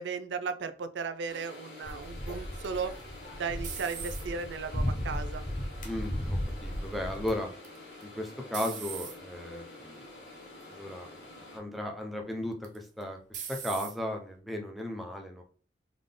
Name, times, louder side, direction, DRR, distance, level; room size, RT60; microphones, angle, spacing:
voice 1, 0.0-2.9 3.4-5.4, right 5 dB, 75° right, 10 dB, 0.4 m, -35 dB
sound 1, 1.3-11.6, left 2 dB, 70° left, 1.7 m, -48 dB
sound 2, 1.8-7.3, equal, 45° left, 0.9 m, -35 dB
sound 3, 2.6-4.5 5.1-5.6 7.6-8.0 8.5-9.2 9.9-10.2 10.6-10.7 12.6-13.0 13.3-13.9, right 7 dB, 45° right, 0.8 m, -40 dB
voice 2, 5.8-7.5 8.0-10.0 10.7-11.1 11.5-15.4, left 1 dB, ahead, 2 dB, 0.6 m, -36 dB
3.7 x 3.5 x 3.8 m, 0.42 s
head